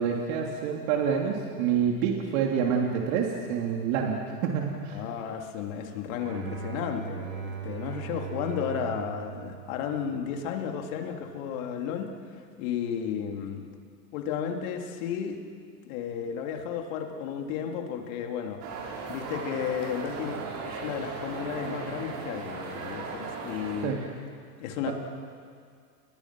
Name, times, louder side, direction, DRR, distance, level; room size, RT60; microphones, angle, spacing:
voice 1, 0.0-5.0 23.8-24.0 24.9-25.0, right 7 dB, 50° right, 0 dB, 3.3 m, -27 dB
voice 2, 4.9-13.7 14.1-15.4 15.8-18.6 19.1-24.0 24.6-24.9, left 8 dB, 55° left, 3 dB, 3.3 m, -33 dB
Bowed string instrument, 6.2-10.4, right 9 dB, 70° right, 6.0 m, -39 dB
sound 1, 18.6-23.9, right 4 dB, 35° right, 5.8 m, -37 dB
30.0 x 21.5 x 6.2 m, 2.1 s
hypercardioid pair, 120°, 48 cm